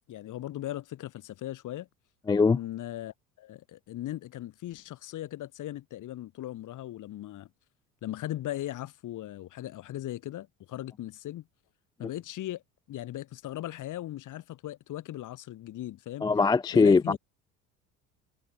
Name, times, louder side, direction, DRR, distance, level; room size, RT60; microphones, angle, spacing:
voice 1, 0.1-1.9 2.5-7.5 8.0-11.4 12.0-12.6 12.9-16.3 16.7-17.2, left 14 dB, 45° left, 2.4 m, -38 dB
voice 2, 2.3-2.6 16.2-17.2, left 4 dB, 10° left, 0.4 m, -21 dB
figure-of-eight pair, 60°, 44 cm